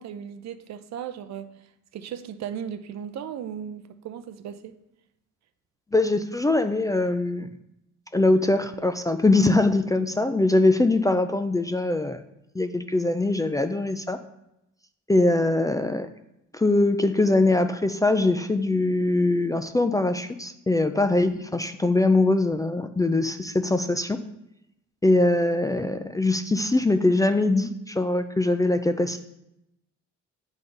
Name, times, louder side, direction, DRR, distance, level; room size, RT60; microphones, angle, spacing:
voice 1, 0.0-1.5 1.9-4.7, right 8 dB, 60° right, 0.5 m, -36 dB
voice 2, 5.9-7.5 8.1-12.2 12.5-14.2 15.1-16.1 16.5-24.2 25.0-29.2, left 2 dB, 10° left, 0.3 m, -22 dB
9.0 x 3.7 x 3.9 m
cardioid pair, 90°, 30 cm